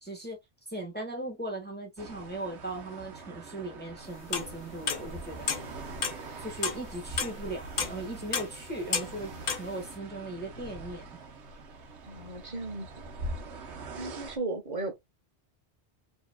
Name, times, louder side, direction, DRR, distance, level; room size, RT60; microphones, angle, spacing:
voice 1, 0.0-0.4 0.7-5.5 6.4-9.3 9.6-11.2, right 2 dB, 10° left, 1.3 m, -38 dB
sound 1, 2.0-14.4, right 3 dB, 80° right, 1.1 m, -43 dB
sound 2, 4.1-5.1 5.5-5.8 6.0-6.8 7.2-7.5 7.8-8.6 8.9-9.7, left 6 dB, 45° left, 0.8 m, -31 dB
voice 2, 12.1-12.9 14.0-14.9, right 2 dB, 40° right, 1.3 m, -35 dB
4.8 x 2.9 x 2.2 m
omnidirectional pair, 1.1 m